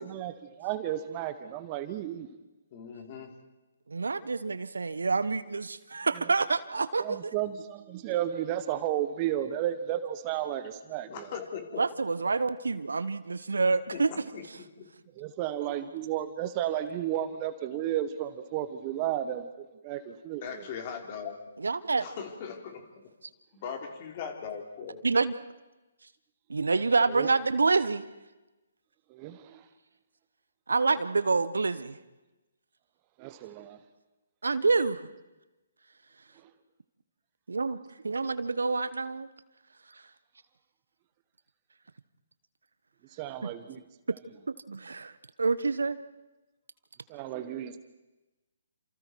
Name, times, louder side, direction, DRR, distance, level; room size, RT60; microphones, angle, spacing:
voice 1, 0.0-2.3 7.0-11.3 15.2-19.5 19.8-20.7 27.1-27.3 29.1-29.6 33.2-33.8 43.1-43.8 47.1-47.8, right 11 dB, 30° right, 11 dB, 1.3 m, -33 dB
voice 2, 2.7-3.3 8.1-8.2 11.1-11.8 13.9-14.9 17.7-17.8 20.4-21.4 21.9-22.8 23.5-25.0, left 6 dB, 35° left, 4 dB, 4.0 m, -40 dB
voice 3, 3.9-7.3 11.8-14.1 21.6-22.0 25.0-25.3 26.5-28.0 30.7-32.0 34.4-35.0 37.5-37.8 38.0-39.3 43.4-43.5 44.5-45.1 45.4-46.0, right 4 dB, 75° right, 15 dB, 1.1 m, -27 dB
29.0 x 27.5 x 4.7 m, 1.1 s
figure-of-eight pair, 135°, 0 cm